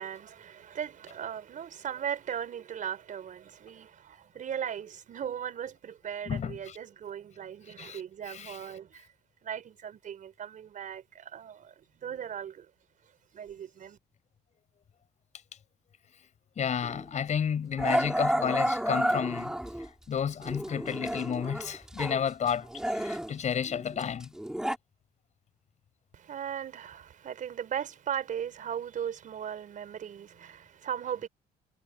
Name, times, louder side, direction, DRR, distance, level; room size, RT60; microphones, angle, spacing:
voice 1, 0.0-9.1 9.4-12.7 13.3-14.0 26.1-31.3, right 9 dB, 50° right, 4.9 m, -38 dB
voice 2, 6.3-6.8 7.8-8.0 8.3-8.6 16.6-19.5 20.1-24.3, left 7 dB, 45° left, 5.6 m, -31 dB
Growling, 16.8-17.0 17.8-19.9 20.4-22.2 22.5-24.8, right 1 dB, 5° right, 3.5 m, -31 dB
cardioid pair, 110°, 17 cm